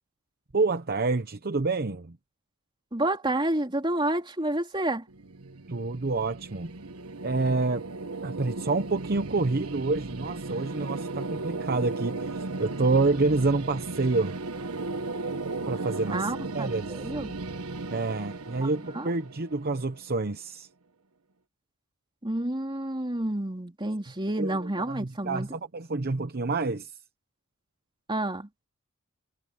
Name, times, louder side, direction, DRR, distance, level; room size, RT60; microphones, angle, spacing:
voice 1, 0.5-2.2 5.7-6.7 7.2-7.8 8.2-14.4 15.5-17.0 17.9-20.7 24.4-26.9, right 3 dB, 45° right, 0.9 m, -28 dB
voice 2, 2.9-5.0 16.1-17.3 18.6-19.1 22.2-25.5 28.1-28.5, right 1 dB, 20° right, 3.3 m, -29 dB
sound 1, 5.1-20.1, right 3 dB, 85° right, 1.3 m, -36 dB
head